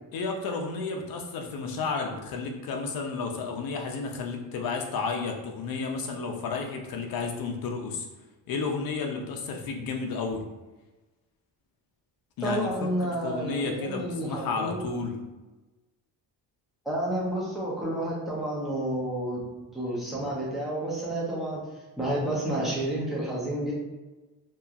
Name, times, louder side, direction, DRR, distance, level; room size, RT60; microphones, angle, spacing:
voice 1, 0.1-8.1 8.5-10.4 12.4-15.1, left 4 dB, 60° left, 2 dB, 0.5 m, -32 dB
voice 2, 12.4-14.9 16.8-19.4 19.7-21.6 22.0-23.7, right 1 dB, ahead, -7 dB, 0.6 m, -30 dB
2.8 x 2.2 x 2.4 m, 1.1 s
cardioid pair, 165°, 40 cm